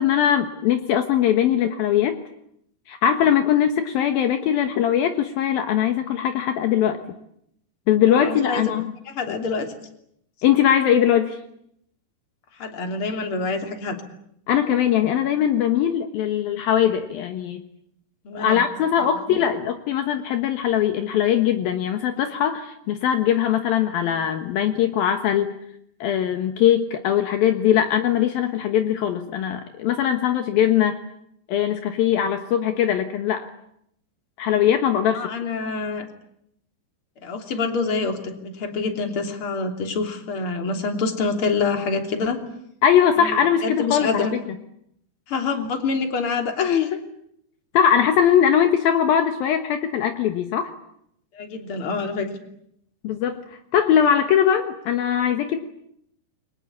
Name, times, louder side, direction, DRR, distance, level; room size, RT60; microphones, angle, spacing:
voice 1, 0.0-2.2 2.9-7.0 7.9-8.9 9.3-9.4 10.4-11.4 14.5-17.6 18.3-25.6 26.0-31.0 31.5-33.5 34.4-35.3 42.8-44.4 47.7-50.7 53.0-53.4 53.7-55.6, left 9 dB, 70° left, 7 dB, 3.1 m, -21 dB
voice 2, 8.1-8.7 9.1-9.7 12.6-14.0 18.3-18.6 19.3-19.5 35.1-36.1 37.2-42.4 43.2-44.3 45.3-47.0 51.3-52.3, left 4 dB, 35° left, 5 dB, 3.7 m, -26 dB
29.0 x 23.5 x 8.5 m, 0.75 s
omnidirectional pair, 4.5 m